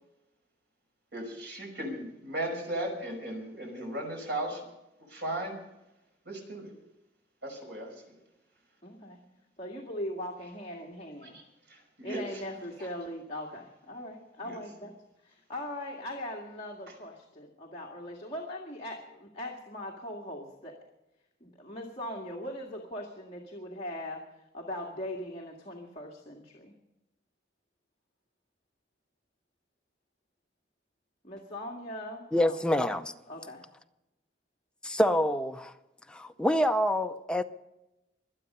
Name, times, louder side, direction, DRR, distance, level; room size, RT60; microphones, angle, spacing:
voice 1, 1.1-4.6 5.1-5.6 6.3-6.7 7.4-8.1 11.2-11.4 11.7-12.2 12.8-12.9 14.4-14.6, right 1 dB, 70° right, 1 dB, 5.5 m, -36 dB
voice 2, 8.8-9.2 9.6-11.4 12.0-14.9 15.2-20.7 21.4-24.2 24.5-26.7 31.2-32.6 33.3-33.6, left 1 dB, 35° left, -2 dB, 2.1 m, -40 dB
voice 3, 32.3-33.1 34.8-35.7 36.1-37.4, equal, 5° left, 6 dB, 0.6 m, -26 dB
25.0 x 8.9 x 5.5 m, 0.92 s
head